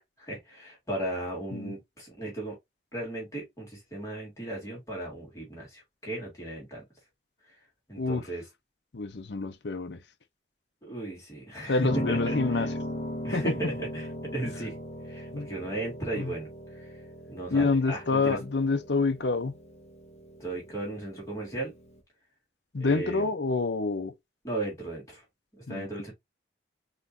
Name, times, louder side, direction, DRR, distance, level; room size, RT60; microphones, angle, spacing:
voice 1, 0.2-2.6 2.9-6.8 7.4-7.5 7.9-8.4 10.8-12.7 13.2-14.8 15.0-18.4 20.4-21.7 22.7-23.3 24.4-25.2 25.5-26.1, right 2 dB, 15° left, 2.9 m, -36 dB
voice 2, 8.9-10.0 11.7-12.7 13.3-13.4 15.3-15.5 16.1-16.3 17.5-19.5 22.7-24.1 25.7-25.9, left 3 dB, 75° left, 0.7 m, -27 dB
Piano, 11.9-22.0, equal, 35° left, 0.9 m, -38 dB
5.7 x 3.1 x 2.6 m
head